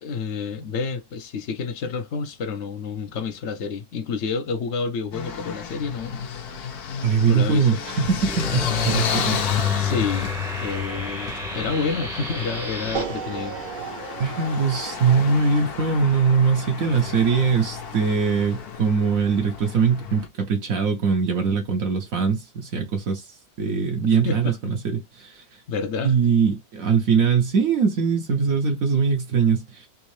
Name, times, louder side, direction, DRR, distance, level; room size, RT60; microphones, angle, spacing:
voice 1, 0.0-6.3 7.3-7.8 9.7-13.6 24.2-24.6 25.7-26.1, left 5 dB, 60° left, 0.8 m, -29 dB
sound 1, 5.1-20.3, left 8 dB, 80° left, 1.3 m, -31 dB
voice 2, 7.0-9.4 14.2-25.4 26.0-29.9, right 5 dB, 65° right, 1.1 m, -22 dB
sound 2, 8.0-13.0, right 1 dB, ahead, 0.6 m, -33 dB
sound 3, 12.9-19.1, right 6 dB, 45° right, 0.7 m, -37 dB
3.6 x 3.0 x 3.1 m
omnidirectional pair, 1.6 m